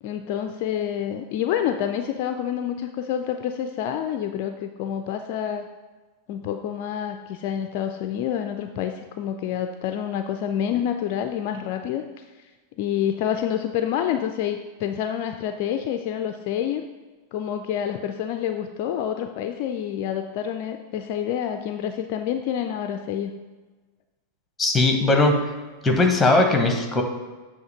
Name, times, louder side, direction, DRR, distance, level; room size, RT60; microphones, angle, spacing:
voice 1, 0.0-5.7 6.3-12.0 12.8-16.8 17.3-23.3, left 9 dB, 45° left, 6 dB, 0.3 m, -28 dB
voice 2, 24.6-25.5 25.8-27.0, left 2 dB, 10° left, 3 dB, 1.1 m, -19 dB
8.0 x 2.8 x 5.5 m, 1.3 s
figure-of-eight pair, 90°, 0 cm